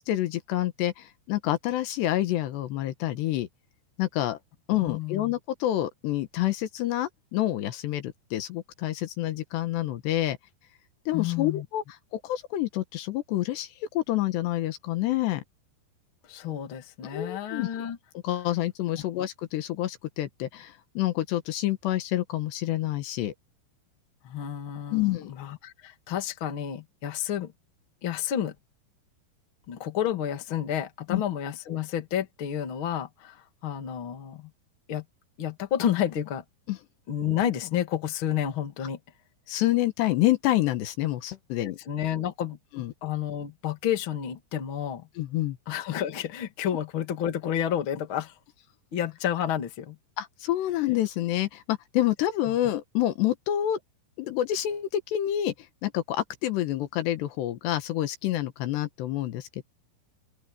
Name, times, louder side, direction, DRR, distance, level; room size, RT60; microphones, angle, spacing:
voice 1, 0.0-3.5 4.0-4.4 4.7-10.4 11.1-11.8 12.1-13.7 13.9-15.4 17.1-17.7 18.2-23.3 24.9-25.3 31.1-31.2 36.7-36.8 39.5-41.8 42.8-42.9 45.2-45.6 50.2-53.8 54.2-55.5 55.8-59.6, left 14 dB, 75° left, 3.4 m, -28 dB
voice 2, 4.8-5.3 11.1-11.7 16.2-18.0 24.2-27.5 28.0-28.5 29.7-34.5 34.9-35.0 35.4-36.4 37.1-39.0 41.6-45.1 45.7-48.4 48.9-50.0 52.5-52.6, left 10 dB, 40° left, 2.1 m, -30 dB
open air
omnidirectional pair, 5.0 m